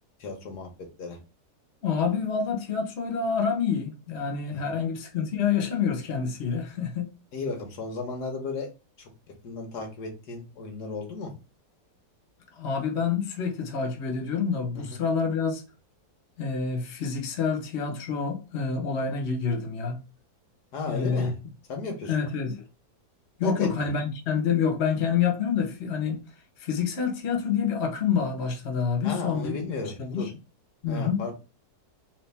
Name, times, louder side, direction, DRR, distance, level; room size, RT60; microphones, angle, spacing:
voice 1, 0.2-1.2 4.5-4.7 7.3-8.7 9.0-9.1 9.4-11.3 14.7-15.0 20.7-21.4 21.7-22.2 23.4-23.7 29.0-30.3 30.9-31.3, left 3 dB, 85° left, 1.7 m, -34 dB
voice 2, 1.8-7.1 12.6-15.6 16.4-20.0 20.9-21.3 22.1-22.5 23.4-26.2 26.6-29.6 30.0-30.3 30.8-31.2, left 6 dB, 45° left, 1.2 m, -27 dB
3.4 x 3.3 x 3.4 m
omnidirectional pair, 1.7 m